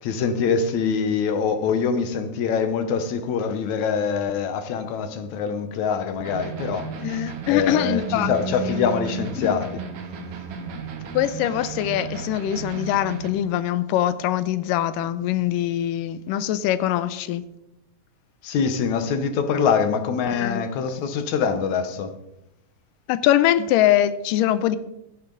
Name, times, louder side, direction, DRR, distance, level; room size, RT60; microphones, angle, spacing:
voice 1, 0.0-6.9 7.2-9.8 18.4-22.1, left 6 dB, 70° left, 2.2 m, -24 dB
sound 1, 6.2-13.3, right 6 dB, 65° right, 2.6 m, -33 dB
voice 2, 7.0-8.3 9.4-9.6 11.1-17.5 20.3-20.6 23.1-24.8, left 12 dB, 85° left, 2.3 m, -23 dB
14.0 x 10.0 x 3.9 m
omnidirectional pair, 3.8 m